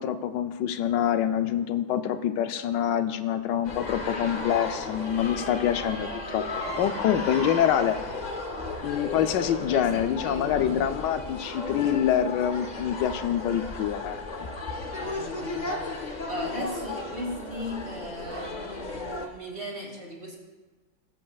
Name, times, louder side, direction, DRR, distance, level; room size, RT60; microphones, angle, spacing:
voice 1, 0.0-8.2 8.8-14.2, left 9 dB, 75° left, 9 dB, 1.2 m, -26 dB
sound 1, 3.6-19.3, left 2 dB, 50° left, 0.5 m, -35 dB
voice 2, 9.5-10.8 15.0-20.4, equal, 35° right, -2 dB, 2.4 m, -37 dB
20.0 x 7.7 x 2.4 m, 1.3 s
omnidirectional pair, 2.0 m